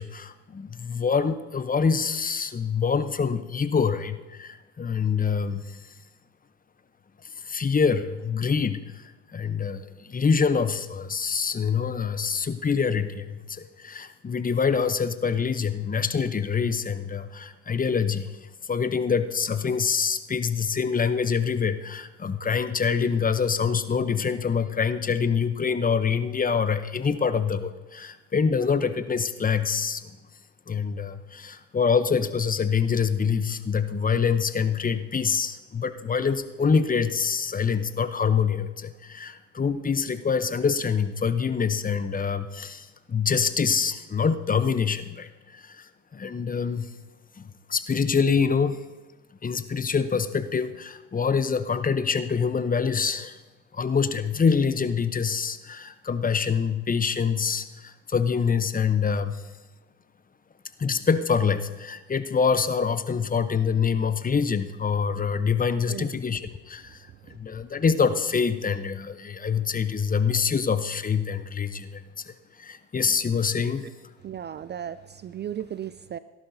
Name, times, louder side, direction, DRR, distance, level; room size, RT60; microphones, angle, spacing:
voice 1, 0.0-5.8 7.4-9.0 9.3-18.3 18.7-30.2 30.7-45.9 46.1-46.9 47.4-47.5 47.7-48.8 49.4-53.4 53.7-59.4 60.8-67.0 67.3-72.0 72.3-72.4 72.6-73.9, left 6 dB, 20° left, 11 dB, 0.8 m, -25 dB
voice 2, 65.9-66.2 67.3-67.4 74.2-76.2, right 10 dB, 30° right, 15 dB, 0.4 m, -35 dB
18.0 x 11.5 x 2.7 m, 1.1 s
hypercardioid pair, 60°, 37 cm